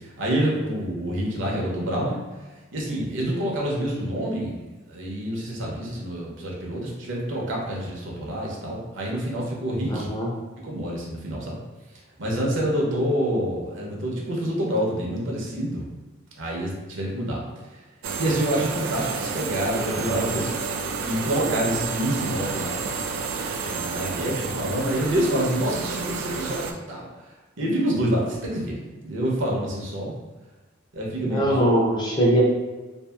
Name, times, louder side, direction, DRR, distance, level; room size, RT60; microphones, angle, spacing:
voice 1, 0.2-2.2 2.7-4.6 4.9-10.1 10.6-11.6 12.2-15.9 16.4-17.4 18.2-20.5 21.0-22.9 23.6-27.1 27.6-28.8 29.0-30.2 30.9-31.5, right 1 dB, 65° right, -3 dB, 0.7 m, -27 dB
voice 2, 9.9-10.3 31.2-32.4, right 1 dB, 20° left, -4 dB, 0.5 m, -21 dB
sound 1, 18.0-26.7, right 5 dB, 85° right, 0.3 m, -30 dB
2.7 x 2.4 x 2.3 m, 1.3 s
head